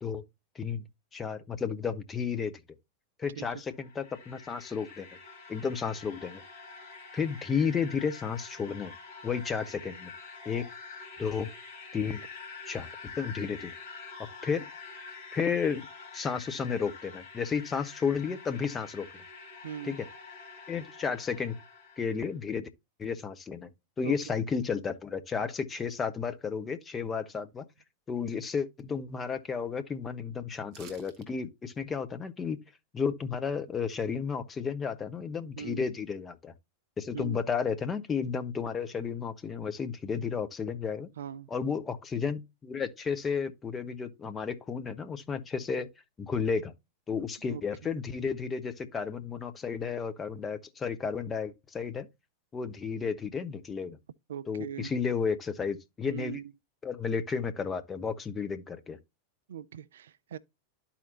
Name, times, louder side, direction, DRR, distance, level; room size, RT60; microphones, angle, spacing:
voice 1, 1.1-2.5 3.2-5.1 5.5-6.4 7.1-8.9 9.2-10.1 10.4-10.7 11.2-11.5 11.9-12.2 12.7-12.9 13.2-13.7 14.4-14.6 15.3-15.8 16.1-19.1 19.8-20.1 20.7-21.6 22.0-22.7 23.0-23.7 24.0-27.6 28.1-32.6 32.9-36.5 37.0-41.1 41.5-45.9 46.2-46.7 47.1-52.1 52.5-54.0 54.5-56.4 56.8-59.0, left 6 dB, 20° left, 0.9 m, -32 dB
sound 1, 3.6-22.3, left 4 dB, 40° left, 2.7 m, -47 dB
voice 2, 19.6-20.0 24.0-24.1 35.6-35.8 37.1-37.4 41.2-41.5 47.4-48.0 54.3-54.9 56.1-56.5 59.5-60.4, right 9 dB, 60° right, 0.4 m, -40 dB
sound 2, 30.7-31.3 31.6-31.7, right 7 dB, 40° right, 1.3 m, -51 dB
12.5 x 4.3 x 2.8 m
figure-of-eight pair, 90°, 0 cm